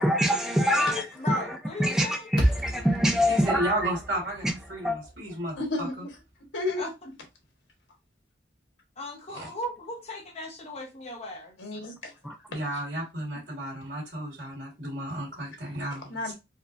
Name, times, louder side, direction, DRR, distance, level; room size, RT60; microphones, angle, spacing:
voice 1, 0.0-3.9 4.4-5.0 12.2-12.3, equal, 5° right, 0.5 m, -25 dB
voice 2, 0.7-2.3 4.8-4.9 6.8-7.1 9.0-11.6, left 2 dB, 35° left, 1.0 m, -37 dB
sound 1, 2.4-6.7, equal, 60° left, 1.3 m, -32 dB
voice 3, 3.3-5.9 9.3-9.5 12.5-16.1, right 1 dB, 70° right, 2.1 m, -33 dB
voice 4, 5.6-6.2 6.5-6.8 11.6-12.1 15.9-16.3, left 2 dB, 80° left, 1.4 m, -32 dB
4.4 x 2.3 x 2.5 m
head